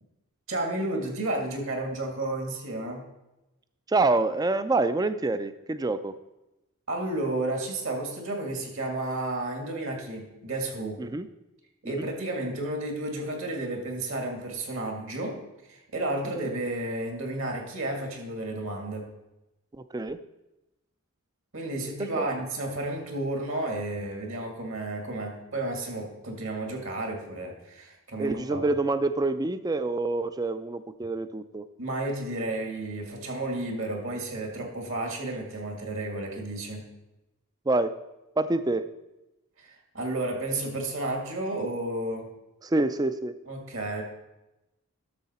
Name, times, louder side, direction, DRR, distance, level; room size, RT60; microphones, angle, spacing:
voice 1, 0.5-3.0 6.9-11.1 11.8-15.4 15.7-19.1 21.5-28.6 31.8-36.9 39.6-42.3 43.5-44.0, right 2 dB, 60° right, 3 dB, 1.9 m, -32 dB
voice 2, 3.9-6.1 11.0-11.3 11.8-12.1 19.9-20.2 22.0-22.3 28.2-31.7 37.7-37.9 38.4-38.9 42.6-43.3, right 2 dB, 15° right, 12 dB, 0.3 m, -26 dB
11.5 x 6.6 x 4.2 m, 0.97 s
head